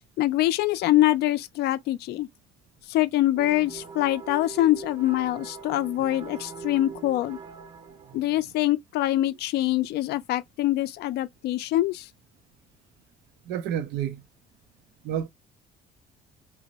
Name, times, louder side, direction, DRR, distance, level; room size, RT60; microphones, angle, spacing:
voice 1, 0.2-2.3 2.9-7.4 8.1-12.1, left 15 dB, 70° left, 0.4 m, -24 dB
sound 1, 3.4-8.3, right 6 dB, 30° right, 0.6 m, -41 dB
voice 2, 13.5-14.2 15.0-15.3, right 9 dB, 80° right, 0.4 m, -29 dB
2.9 x 2.0 x 3.9 m
cardioid pair, 100°, 17 cm